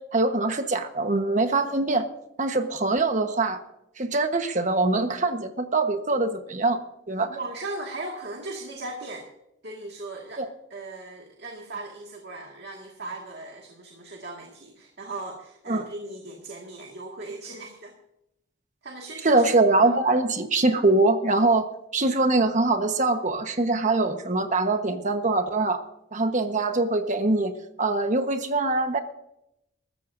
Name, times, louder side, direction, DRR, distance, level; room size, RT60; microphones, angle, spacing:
voice 1, 0.1-2.0 2.4-3.6 4.0-6.8 7.1-7.3 10.4-10.5 15.7-15.8 19.2-25.8 26.1-29.0, right 2 dB, 40° right, 7 dB, 1.2 m, -23 dB
voice 2, 7.3-9.3 9.6-10.4 10.7-18.0 18.8-19.7, right 2 dB, 55° right, 0 dB, 1.9 m, -38 dB
22.0 x 14.0 x 2.6 m, 0.83 s
head